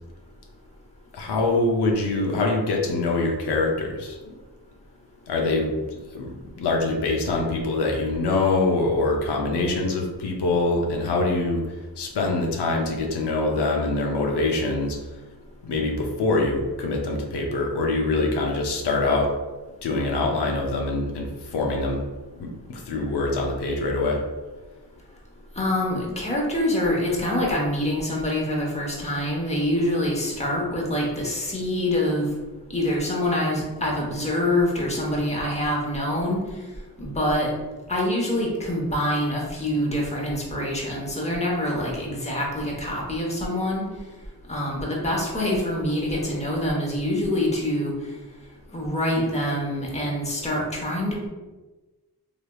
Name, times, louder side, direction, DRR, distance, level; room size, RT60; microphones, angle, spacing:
voice 1, 1.1-4.3 5.3-11.6 12.0-15.0 15.6-19.3 19.8-22.0 22.3-24.2, left 2 dB, 90° left, 0 dB, 0.6 m, -24 dB
voice 2, 25.6-32.3 32.7-36.4 37.0-37.5 37.9-43.9 44.5-47.9 48.7-51.3, left 1 dB, 15° left, -2 dB, 0.9 m, -25 dB
3.3 x 2.9 x 2.2 m, 1.2 s
cardioid pair, 60°, 39 cm